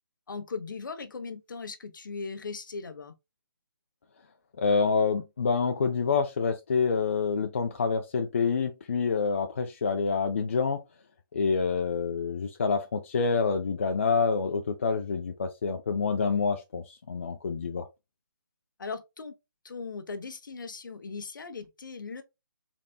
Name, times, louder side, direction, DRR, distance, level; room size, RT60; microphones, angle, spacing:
voice 1, 0.3-3.1 18.8-19.3 19.6-22.2, left 4 dB, 60° left, 0.8 m, -38 dB
voice 2, 4.6-10.8 11.3-17.8, left 5 dB, 35° left, 0.4 m, -27 dB
4.1 x 3.4 x 2.2 m
hypercardioid pair, 165°, 12 cm